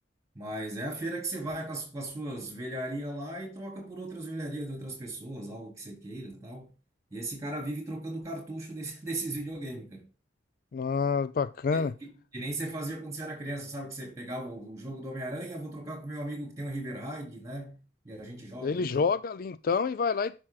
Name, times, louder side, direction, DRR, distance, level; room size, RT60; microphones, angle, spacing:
voice 1, 0.3-6.7 7.1-10.1 11.7-19.1, right 1 dB, 15° right, 4.0 m, -37 dB
voice 2, 10.7-11.9 18.6-20.3, left 5 dB, 50° left, 0.4 m, -28 dB
11.5 x 6.2 x 2.3 m
head